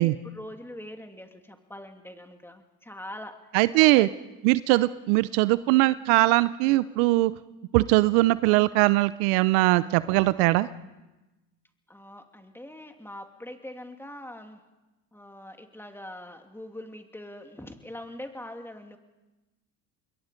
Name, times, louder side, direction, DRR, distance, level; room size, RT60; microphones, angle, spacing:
voice 1, 0.0-3.4 3.7-4.1 10.0-10.3 11.9-14.6 15.1-19.0, left 1 dB, 5° left, 5 dB, 2.7 m, -43 dB
voice 2, 3.5-4.1 4.4-7.3 7.7-10.7, right 19 dB, 70° right, 16 dB, 0.8 m, -21 dB
27.0 x 22.0 x 5.2 m, 1.1 s
hypercardioid pair, 80°, 45 cm